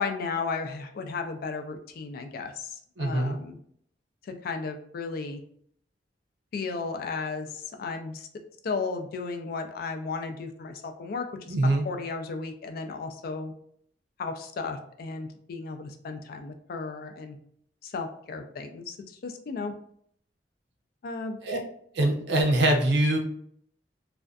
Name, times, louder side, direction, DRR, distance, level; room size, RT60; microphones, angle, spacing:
voice 1, 0.0-3.6 4.2-5.4 6.5-8.3 8.6-13.5 14.2-17.4 17.8-19.7 21.0-21.4, left 4 dB, 55° left, 6 dB, 0.3 m, -34 dB
voice 2, 3.0-3.4 11.5-11.9 21.4-21.6 21.9-23.2, right 1 dB, 70° right, 2 dB, 0.5 m, -23 dB
2.4 x 2.2 x 2.3 m, 0.65 s
head